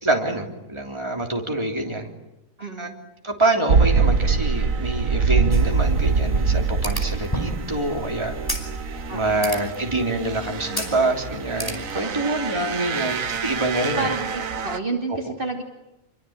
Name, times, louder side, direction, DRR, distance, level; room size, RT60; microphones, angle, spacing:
voice 1, 0.0-2.1 2.8-2.9 3.2-8.3 9.1-14.1, right 2 dB, 20° right, 2 dB, 3.4 m, -25 dB
voice 2, 2.6-2.9 9.1-9.5 11.9-12.2 12.6-12.9 14.0-15.6, right 3 dB, 40° right, 2 dB, 2.9 m, -30 dB
sound 1, 3.7-14.8, right 5 dB, 85° right, 1.6 m, -24 dB
sound 2, 5.5-12.0, equal, 15° left, 4.9 m, -35 dB
28.0 x 24.0 x 8.8 m, 0.93 s
omnidirectional pair, 1.4 m